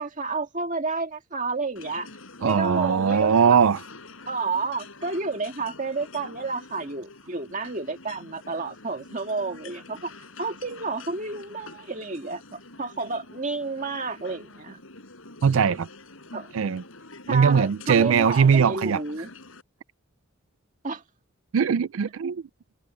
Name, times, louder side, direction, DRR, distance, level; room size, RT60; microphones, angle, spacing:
voice 1, 0.0-2.1 2.4-3.6 4.3-10.1 10.4-14.8 16.3-16.5 17.3-19.3 20.8-21.0, right 3 dB, 40° right, 2.0 m, -30 dB
sound 1, 1.8-19.6, left 3 dB, 85° left, 5.1 m, -46 dB
voice 2, 2.4-3.8 15.4-15.9 16.5-16.8 17.3-19.0 21.5-22.4, right 6 dB, 80° right, 0.4 m, -20 dB
head